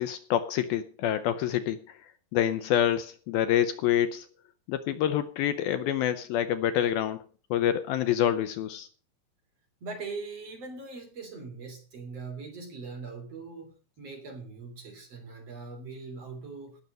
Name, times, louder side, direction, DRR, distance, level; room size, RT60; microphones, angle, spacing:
voice 1, 0.0-4.3 4.7-7.2 7.5-8.9, left 10 dB, 75° left, 11 dB, 2.4 m, -27 dB
voice 2, 9.8-16.8, right 4 dB, 40° right, 3 dB, 4.0 m, -41 dB
17.5 x 6.8 x 7.5 m, 0.39 s
omnidirectional pair, 4.7 m